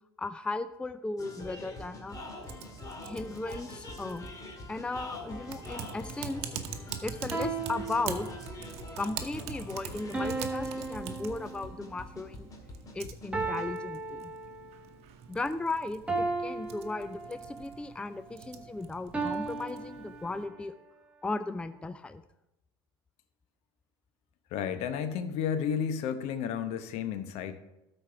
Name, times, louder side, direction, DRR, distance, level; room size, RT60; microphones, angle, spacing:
voice 1, 0.2-2.2 3.0-4.3 4.7-6.5 7.0-8.3 9.0-12.5 12.9-14.3 15.3-20.7 21.2-22.2, left 3 dB, 10° left, 12 dB, 0.4 m, -36 dB
sound 1, 1.2-13.7, left 2 dB, 30° left, 2.1 m, -45 dB
Typing, 2.4-20.5, right 8 dB, 60° right, 1.0 m, -45 dB
sound 2, 5.3-5.8 7.3-8.8 10.1-12.0 13.3-14.9 16.1-17.7 19.1-20.7, right 3 dB, 10° right, 1.6 m, -36 dB
voice 2, 24.5-27.6, left 7 dB, 60° left, 10 dB, 0.9 m, -32 dB
12.5 x 4.5 x 5.8 m, 0.92 s
hypercardioid pair, 75°, 12 cm